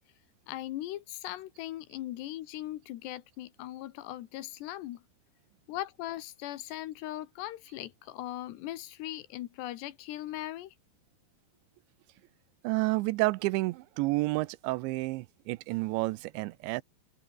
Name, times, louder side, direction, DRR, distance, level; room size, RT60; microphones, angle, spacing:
voice 1, 0.5-5.0 5.7-10.7, left 14 dB, 75° left, 3.2 m, -39 dB
voice 2, 12.6-16.8, right 21 dB, 85° right, 3.0 m, -30 dB
omnidirectional pair, 5.1 m